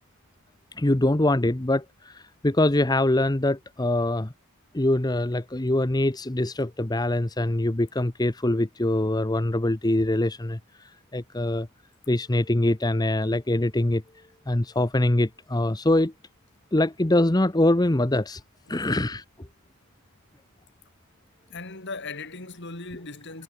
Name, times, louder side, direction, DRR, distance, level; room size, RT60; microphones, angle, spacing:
voice 1, 0.8-4.3 4.7-10.6 11.1-11.7 12.1-14.0 14.5-16.1 16.7-18.4 18.7-19.5, left 1 dB, 20° left, 0.9 m, -23 dB
voice 2, 18.7-19.0 21.5-23.4, left 3 dB, 50° left, 3.6 m, -38 dB
head